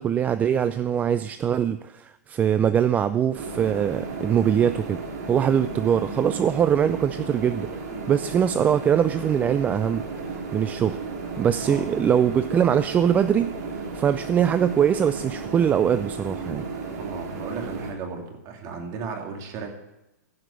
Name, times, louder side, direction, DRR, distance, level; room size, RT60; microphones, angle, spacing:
voice 1, 0.0-5.0 5.3-7.8 8.1-10.0 10.5-11.0 11.4-13.5 13.9-16.6, right 8 dB, 15° right, 11 dB, 0.3 m, -22 dB
sound 1, 3.3-17.9, right 4 dB, 65° right, 2.9 m, -34 dB
voice 2, 17.0-19.7, right 5 dB, 35° right, 2 dB, 2.6 m, -35 dB
16.0 x 5.9 x 6.8 m, 0.91 s
hypercardioid pair, 135°, 10 cm